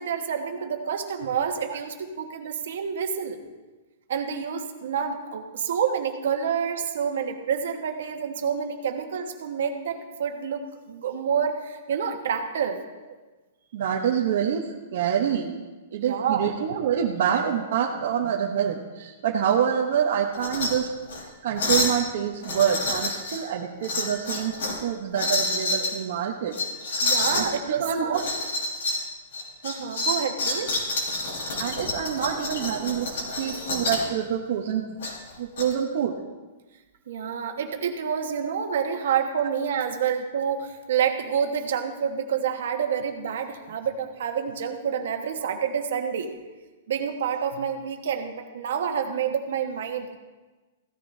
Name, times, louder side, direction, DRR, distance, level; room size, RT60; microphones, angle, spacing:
voice 1, 0.0-3.4 4.1-12.8 16.0-16.5 27.0-28.2 29.6-30.8 37.1-46.3 46.9-50.2, right 7 dB, 65° right, 4 dB, 1.3 m, -28 dB
voice 2, 13.7-15.6 15.9-21.0 21.4-26.6 26.9-27.0 27.3-28.2 31.6-34.9 35.4-36.2, right 8 dB, 50° right, -1 dB, 0.9 m, -26 dB
sound 1, 20.3-20.7 21.1-21.2 21.6-22.0 22.4-23.4 23.8-24.8 25.1-25.9 26.5-27.5 28.1-29.0 29.3-34.1 35.0-35.6, left 2 dB, 65° left, 4.3 m, -28 dB
16.0 x 13.5 x 2.7 m, 1.2 s
hypercardioid pair, 175°, 0 cm